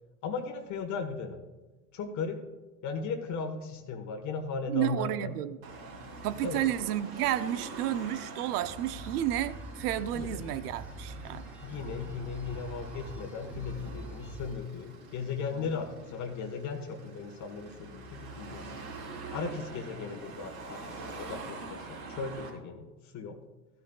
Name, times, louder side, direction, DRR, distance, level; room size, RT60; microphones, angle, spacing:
voice 1, 0.2-1.4 1.9-2.4 2.8-5.3 6.4-6.6 10.1-10.4 11.6-18.7 19.3-20.9 21.2-23.4, left 5 dB, 35° left, 5 dB, 1.4 m, -37 dB
voice 2, 4.7-5.6 6.2-11.5, right 12 dB, 70° right, 14 dB, 0.8 m, -31 dB
Car passing by / Traffic noise roadway noise / Engine, 5.6-22.5, right 3 dB, 55° right, 3.8 m, -45 dB
sound 1, 8.6-14.6, right 1 dB, 5° right, 2.3 m, -44 dB
15.0 x 12.0 x 2.4 m, 1.2 s
hypercardioid pair, 105°, 48 cm